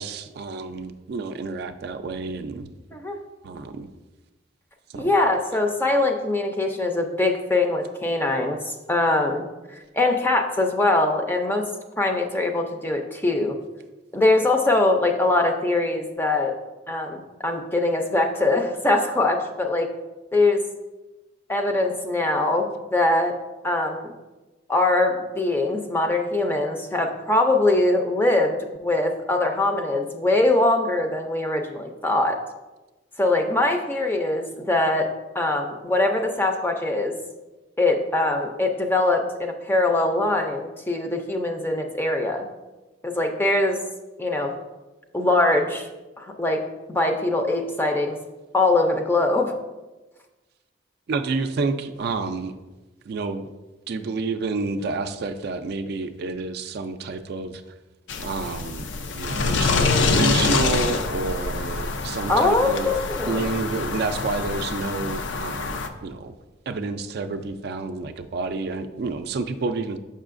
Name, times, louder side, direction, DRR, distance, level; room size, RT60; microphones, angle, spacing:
voice 1, 0.0-2.7 3.4-3.9 4.9-5.1 51.1-52.6 53.1-53.5 53.9-57.6 58.2-58.9 59.1-62.9 63.3-66.3 66.7-70.0, right 3 dB, 55° right, 8 dB, 0.3 m, -29 dB
voice 2, 5.0-8.6 8.9-9.4 9.9-11.7 12.0-13.6 14.1-16.5 16.9-19.9 20.3-20.6 21.5-23.4 23.6-24.1 24.7-32.4 33.2-35.1 35.3-37.1 37.8-42.4 43.0-43.8 44.2-44.5 45.1-45.9 46.2-46.6 46.9-48.2 48.5-49.5 62.3-63.5, left 2 dB, 10° left, 3 dB, 0.4 m, -22 dB
sound 1, 58.1-65.9, left 4 dB, 75° left, 0.5 m, -25 dB
7.0 x 5.5 x 2.5 m, 1.1 s
head